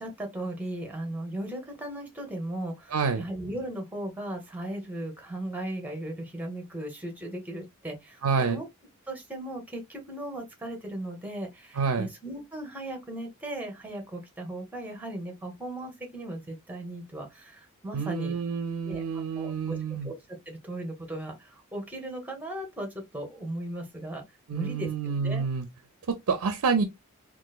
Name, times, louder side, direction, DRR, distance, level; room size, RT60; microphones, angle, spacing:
voice 1, 0.0-8.7 9.1-18.4 18.8-19.0 19.4-20.2 20.5-24.2 24.5-25.4, right 1 dB, 5° right, 0.8 m, -37 dB
voice 2, 2.9-3.2 8.2-8.6 11.7-12.1 17.9-20.1 24.5-25.7 26.1-26.8, right 5 dB, 70° right, 0.4 m, -28 dB
3.9 x 2.4 x 2.3 m
head